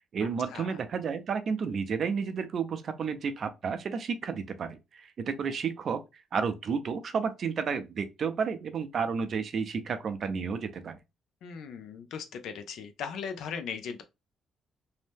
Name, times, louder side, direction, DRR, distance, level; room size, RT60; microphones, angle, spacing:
voice 1, 0.1-6.0 6.3-11.0, right 6 dB, 55° right, 0.5 m, -31 dB
voice 2, 11.4-14.0, left 6 dB, 80° left, 0.5 m, -38 dB
2.7 x 2.1 x 3.2 m
cardioid pair, 90°, 0 cm